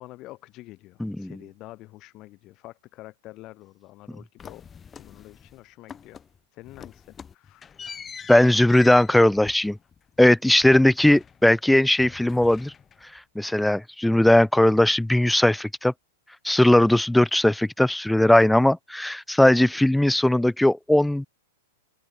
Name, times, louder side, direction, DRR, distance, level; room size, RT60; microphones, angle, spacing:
voice 1, 0.0-4.6 5.0-6.2 6.5-7.7, left 18 dB, 35° left, 1.9 m, -46 dB
voice 2, 1.0-1.3 8.3-9.8 10.2-12.7 13.4-15.9 16.4-21.3, left 1 dB, 5° left, 0.4 m, -19 dB
sound 1, 4.4-5.6 5.9-6.4 6.6-11.6 11.9-13.2, left 7 dB, 20° left, 1.1 m, -44 dB
open air
hypercardioid pair, 105°, 0 cm